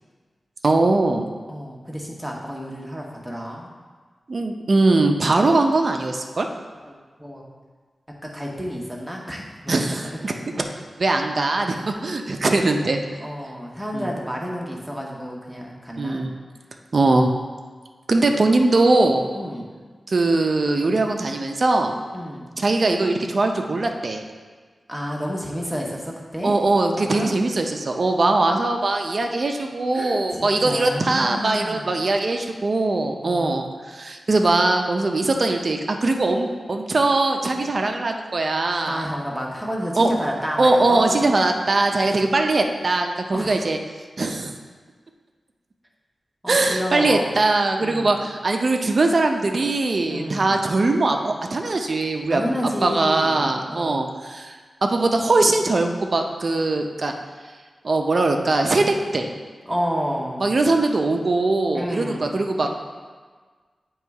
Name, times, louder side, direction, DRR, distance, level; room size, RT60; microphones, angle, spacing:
voice 1, 0.6-1.3 4.3-6.5 9.7-10.7 11.0-13.0 13.9-14.1 16.0-16.3 16.9-17.3 18.1-19.3 20.1-22.0 22.6-24.2 26.4-39.0 40.0-40.1 40.6-43.8 44.2-44.5 46.5-52.4 52.8-54.6 54.8-57.1 57.8-59.3 60.4-62.7, right 2 dB, 45° right, 3 dB, 0.5 m, -21 dB
voice 2, 1.5-3.7 6.8-7.4 8.2-10.2 13.2-16.3 19.3-19.6 22.1-22.4 24.9-26.5 27.0-27.3 29.9-31.9 33.2-33.6 38.9-41.2 43.3-43.5 46.4-47.4 47.8-48.1 50.1-50.6 52.3-54.1 59.7-60.4 61.7-62.3 62.6-62.7, equal, 5° right, -2 dB, 1.0 m, -30 dB
9.0 x 3.1 x 4.7 m, 1.5 s
wide cardioid pair, 140°, 0 cm